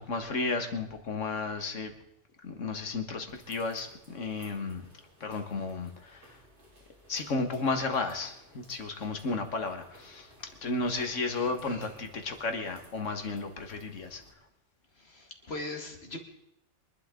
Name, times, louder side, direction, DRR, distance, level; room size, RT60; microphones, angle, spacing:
voice 1, 0.0-1.9 2.4-4.9 5.2-6.4 7.1-10.3 10.6-14.2, left 3 dB, 90° left, 6 dB, 1.9 m, -33 dB
sound 1, 3.3-14.3, equal, 70° right, 4.0 m, -58 dB
voice 2, 11.3-11.9 15.0-16.2, left 2 dB, 60° left, 3 dB, 2.3 m, -41 dB
24.0 x 11.5 x 3.8 m, 0.78 s
omnidirectional pair, 1.2 m